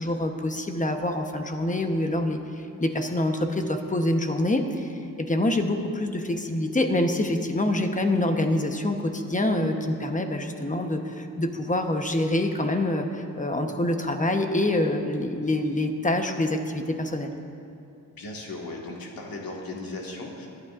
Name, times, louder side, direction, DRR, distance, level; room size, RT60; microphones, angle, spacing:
voice 1, 0.0-17.3, left 1 dB, 20° left, 4 dB, 1.0 m, -26 dB
voice 2, 18.1-20.5, left 2 dB, 80° left, -1 dB, 1.9 m, -37 dB
21.5 x 11.0 x 2.5 m, 2.6 s
wide cardioid pair, 100°, 35 cm